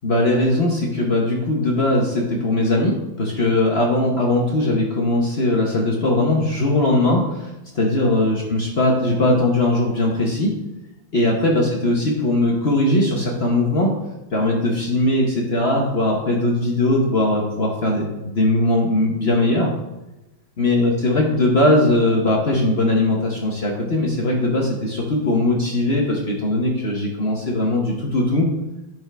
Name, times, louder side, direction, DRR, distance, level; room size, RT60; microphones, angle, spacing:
voice 1, 0.0-7.5 7.7-10.5 11.1-13.9 14.3-19.7 20.6-28.5, left 1 dB, 45° left, -1 dB, 0.8 m, -20 dB
10.5 x 4.5 x 3.4 m, 0.99 s
omnidirectional pair, 2.3 m